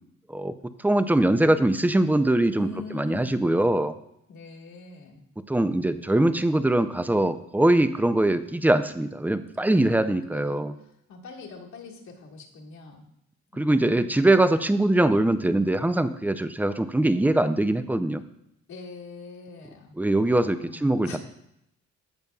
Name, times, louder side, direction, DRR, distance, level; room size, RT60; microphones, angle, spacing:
voice 1, 0.8-3.9 5.5-10.7 13.6-18.2 20.0-21.2, right 1 dB, 5° right, 11 dB, 0.5 m, -22 dB
voice 2, 2.5-3.4 4.3-5.2 9.7-10.6 11.1-13.1 13.5-14.3 18.7-19.9 20.5-21.2, left 4 dB, 70° left, -2 dB, 1.9 m, -43 dB
16.0 x 5.3 x 2.4 m, 0.79 s
cardioid pair, 90°, 30 cm